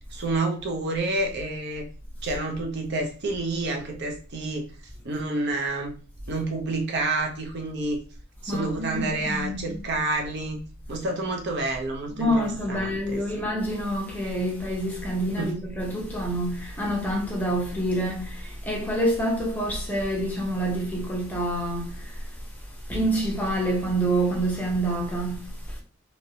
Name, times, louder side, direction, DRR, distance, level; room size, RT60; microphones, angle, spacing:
voice 1, 0.1-1.8 2.2-4.7 5.0-6.0 6.3-8.0 8.4-10.6 10.9-13.5 15.4-15.5, right 2 dB, 50° right, 0.6 m, -29 dB
voice 2, 8.5-9.8 12.1-22.1 22.9-25.5, right 1 dB, 10° left, 0.8 m, -27 dB
3.1 x 2.9 x 2.7 m
head